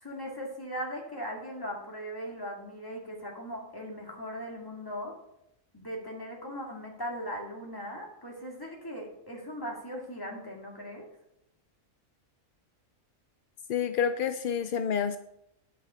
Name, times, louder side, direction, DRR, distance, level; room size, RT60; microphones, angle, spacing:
voice 1, 0.0-5.1 5.7-11.1, equal, 15° left, -1 dB, 2.1 m, -39 dB
voice 2, 13.7-15.2, left 7 dB, 70° left, 9 dB, 0.5 m, -28 dB
10.0 x 5.8 x 5.6 m, 0.82 s
omnidirectional pair, 1.4 m